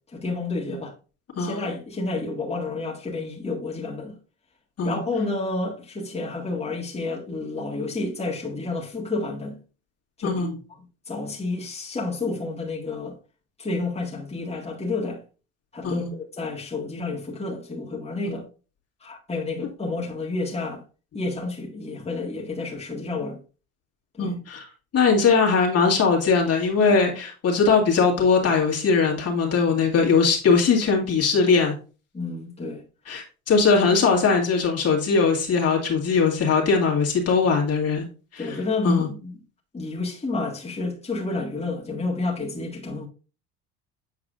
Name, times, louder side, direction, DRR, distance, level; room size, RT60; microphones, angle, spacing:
voice 1, 0.1-0.9 1.4-4.1 4.8-9.6 10.2-10.4 11.1-13.1 13.6-15.2 15.7-18.4 19.0-20.8 21.1-23.4 24.2-24.3 32.1-32.8 38.4-39.4 39.7-43.1, left 3 dB, 20° left, 1.8 m, -30 dB
voice 2, 10.2-10.6 15.8-16.1 18.2-18.4 24.2-24.6 24.9-31.7 33.1-38.1 38.3-39.1, left 5 dB, 45° left, 2.1 m, -20 dB
8.2 x 4.7 x 2.5 m
supercardioid pair, 75°, 34 cm